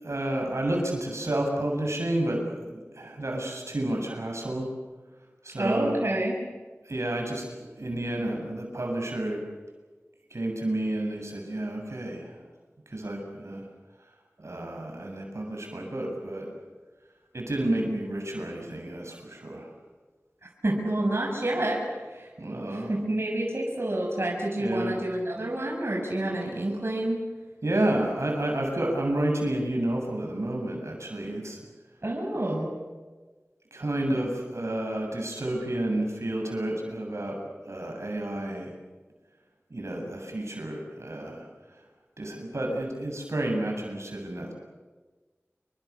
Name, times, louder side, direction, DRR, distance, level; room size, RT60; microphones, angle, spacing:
voice 1, 0.0-4.7 5.4-6.0 6.9-9.4 10.3-12.4 12.9-13.7 14.4-16.5 17.3-19.7 22.4-22.9 24.6-25.0 27.6-31.6 33.7-37.4 37.7-38.7 39.7-41.5 42.2-44.5, right 1 dB, 75° right, 1 dB, 7.6 m, -30 dB
voice 2, 5.6-6.3 20.6-21.8 22.1-22.3 22.7-27.2 32.0-32.7, right 1 dB, 55° right, -1 dB, 6.9 m, -28 dB
29.0 x 25.0 x 7.2 m, 1.3 s
wide cardioid pair, 50°, 5 cm